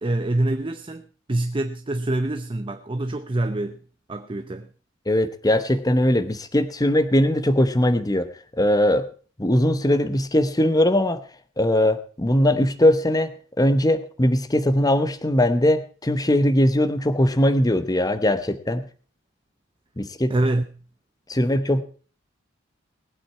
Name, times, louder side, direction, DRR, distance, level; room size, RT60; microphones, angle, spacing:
voice 1, 0.0-3.8 4.1-4.7 20.3-20.6, right 1 dB, 25° right, 0.7 m, -25 dB
voice 2, 5.1-9.1 9.4-11.2 11.6-18.8 20.0-20.3 21.3-21.8, left 1 dB, 20° left, 0.9 m, -20 dB
19.5 x 8.6 x 4.5 m
head